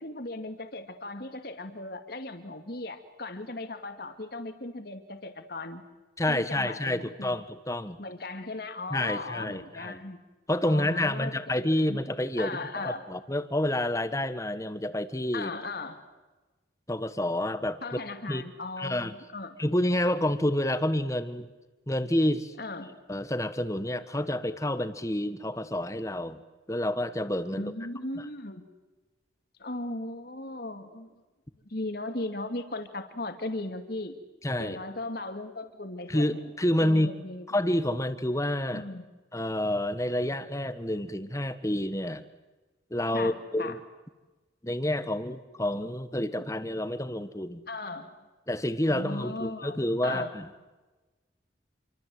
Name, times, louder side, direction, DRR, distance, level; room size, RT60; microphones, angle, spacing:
voice 1, 0.0-5.8 6.3-7.4 8.0-10.2 10.6-11.4 11.9-12.0 12.4-13.1 15.3-16.0 17.8-19.6 22.6-23.0 27.5-28.7 29.6-31.1 31.7-34.2 34.6-36.5 36.8-37.5 38.7-39.0 43.1-43.8 47.7-48.2 48.9-50.3, left 2 dB, 55° left, 7 dB, 2.4 m, -37 dB
voice 2, 6.2-8.0 8.9-10.0 10.5-12.6 12.8-15.5 16.9-17.8 18.3-18.4 18.8-19.1 19.6-21.5 21.9-22.5 23.1-26.4 26.7-27.7 34.4-34.8 36.1-37.1 37.5-38.8 39.3-42.2 42.9-43.8 44.6-47.6 48.5-50.4, left 1 dB, 15° left, 12 dB, 1.4 m, -28 dB
28.5 x 24.5 x 7.9 m, 1.2 s
head